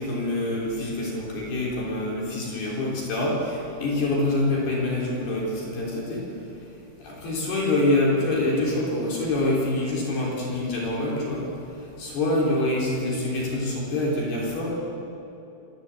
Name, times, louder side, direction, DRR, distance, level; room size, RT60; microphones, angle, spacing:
voice 1, 0.0-6.3 7.0-11.5 12.0-14.7, left 2 dB, 55° left, -3 dB, 5.5 m, -26 dB
28.0 x 18.0 x 8.5 m, 2.9 s
omnidirectional pair, 5.6 m